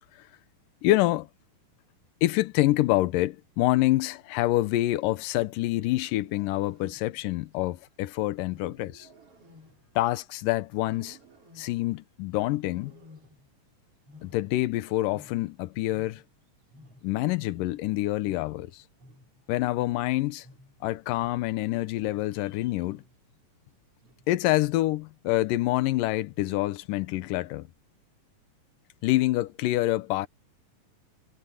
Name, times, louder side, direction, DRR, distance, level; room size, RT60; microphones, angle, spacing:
voice 1, 0.8-1.3 2.2-9.1 10.0-11.2 11.6-12.9 14.2-16.2 17.0-18.8 19.5-20.5 20.8-23.0 24.3-27.7 29.0-30.3, left 17 dB, 80° left, 2.4 m, -26 dB
Wild animals, 5.8-7.4 8.5-10.4 10.8-12.0 12.6-13.7 13.9-16.5 16.7-21.6 22.0-22.4 22.9-23.3 24.0-24.5, left 1 dB, 40° right, 5.7 m, -54 dB
omnidirectional pair, 3.9 m